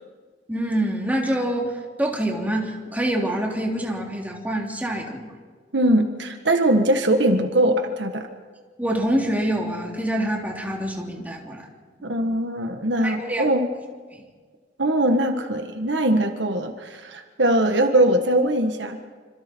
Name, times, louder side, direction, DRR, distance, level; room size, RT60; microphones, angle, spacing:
voice 1, 0.5-5.3 8.8-11.7 13.0-13.5, right 1 dB, 10° right, -1 dB, 3.5 m, -26 dB
voice 2, 5.7-8.3 12.0-13.7 14.8-19.0, right 1 dB, 70° right, 6 dB, 1.7 m, -21 dB
27.0 x 26.5 x 4.7 m, 1.5 s
head